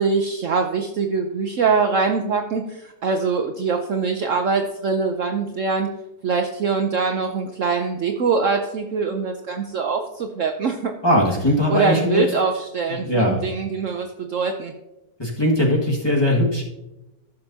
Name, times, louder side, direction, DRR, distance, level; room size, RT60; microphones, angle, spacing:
voice 1, 0.0-5.9 6.2-10.9 11.7-14.7, right 5 dB, 60° right, 4 dB, 0.9 m, -23 dB
voice 2, 11.0-12.2 12.9-13.4 15.2-16.6, left 1 dB, 15° left, -3 dB, 1.7 m, -20 dB
15.0 x 6.7 x 2.8 m, 0.95 s
omnidirectional pair, 1.8 m